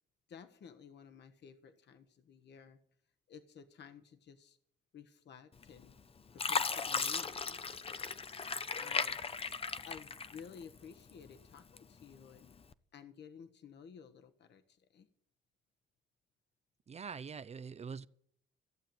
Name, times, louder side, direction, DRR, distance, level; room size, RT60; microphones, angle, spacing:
voice 1, 0.3-2.8 3.3-4.6 4.9-6.0 6.3-8.1 8.7-9.2 9.9-12.5 12.9-15.1, left 7 dB, 60° left, 1.3 m, -54 dB
Fill (with liquid), 5.6-6.0 6.4-10.8 11.2-12.0 12.6-12.7, left 5 dB, 30° left, 0.7 m, -36 dB
voice 2, 16.9-18.1, right 6 dB, 35° right, 0.5 m, -44 dB
15.0 x 7.7 x 8.9 m
cardioid pair, 90°, 20 cm